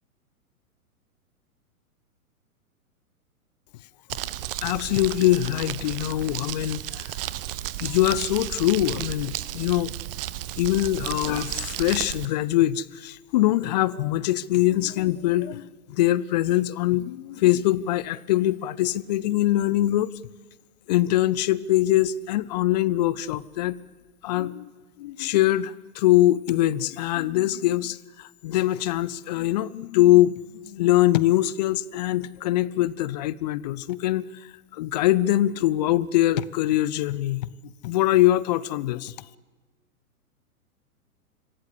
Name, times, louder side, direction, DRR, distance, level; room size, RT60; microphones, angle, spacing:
Crumpling crinkling, 4.1-12.3, right 14 dB, 40° right, 1.1 m, -33 dB
voice 1, 4.6-7.1 7.8-9.9 10.6-20.1 20.9-23.8 24.2-24.7 25.0-34.2 34.7-37.5 37.8-39.1, left 14 dB, 30° left, 21 dB, 0.6 m, -23 dB
26.0 x 17.0 x 8.5 m, 1.3 s
figure-of-eight pair, 110°, 45 cm